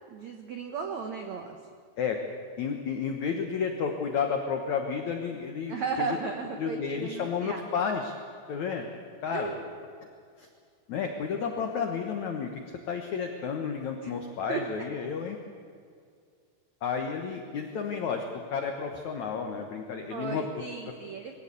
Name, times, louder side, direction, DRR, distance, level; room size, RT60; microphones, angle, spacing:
voice 1, 0.1-1.6 5.7-7.7 9.3-9.7 14.0-14.2 14.5-14.6 20.1-21.4, right 5 dB, 85° right, 4 dB, 1.5 m, -35 dB
voice 2, 2.6-6.1 6.6-8.1 8.5-8.9 9.2-9.5 10.4-10.5 10.9-12.6 12.9-15.4 16.8-20.4, left 6 dB, 70° left, 4 dB, 1.8 m, -31 dB
22.0 x 16.5 x 8.5 m, 2.2 s
omnidirectional pair, 5.3 m